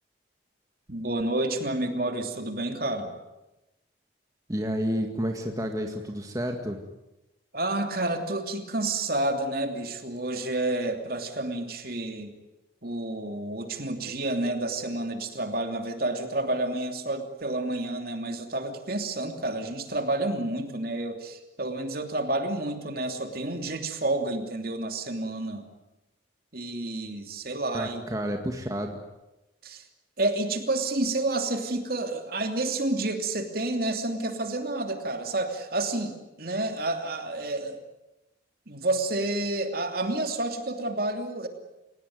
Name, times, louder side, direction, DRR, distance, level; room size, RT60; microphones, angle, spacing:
voice 1, 0.9-3.1 7.5-12.3 12.8-25.6 26.5-28.0 29.6-29.8 30.2-37.8 38.7-41.5, right 2 dB, 50° right, 5 dB, 3.0 m, -29 dB
voice 2, 4.5-6.8 27.7-28.9, equal, 20° right, 3 dB, 2.0 m, -30 dB
29.5 x 17.5 x 9.6 m, 0.99 s
head